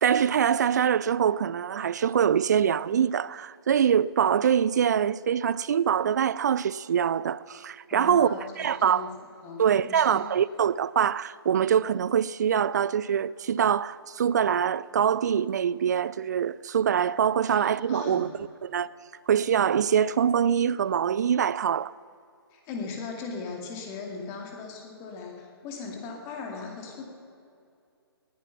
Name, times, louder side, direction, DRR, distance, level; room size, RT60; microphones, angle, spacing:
voice 1, 0.0-9.1 9.6-18.3 18.6-18.9 19.3-21.9, right 8 dB, 45° right, 0.4 m, -24 dB
voice 2, 7.9-9.1 9.4-10.2 17.4-18.3 22.5-27.1, left 4 dB, 20° left, 2.2 m, -38 dB
19.0 x 9.5 x 5.9 m
figure-of-eight pair, 140°, 13 cm